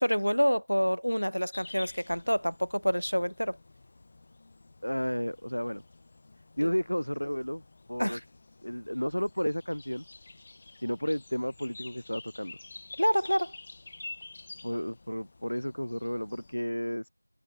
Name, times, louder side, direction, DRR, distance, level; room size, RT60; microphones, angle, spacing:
voice 1, 0.0-3.6 8.0-8.2 13.0-13.5, equal, 85° left, 2.2 m, -27 dB
sound 1, 1.5-16.6, left 3 dB, 10° left, 3.3 m, -50 dB
voice 2, 4.8-5.8 6.6-7.6 7.9-8.2 8.6-10.0 10.8-12.5 14.6-17.1, equal, 65° left, 4.4 m, -32 dB
figure-of-eight pair, 175°, 0 cm